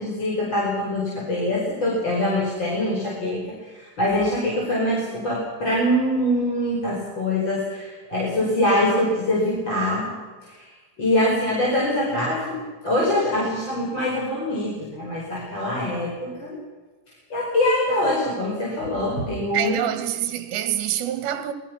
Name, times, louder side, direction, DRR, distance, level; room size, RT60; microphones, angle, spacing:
voice 1, 0.0-10.1 10.4-10.7 11.0-16.6 17.3-19.8, left 1 dB, 25° left, 5.5 m, -24 dB
voice 2, 19.5-21.5, right 12 dB, 75° right, 3.1 m, -26 dB
27.5 x 20.0 x 6.0 m
omnidirectional pair, 5.5 m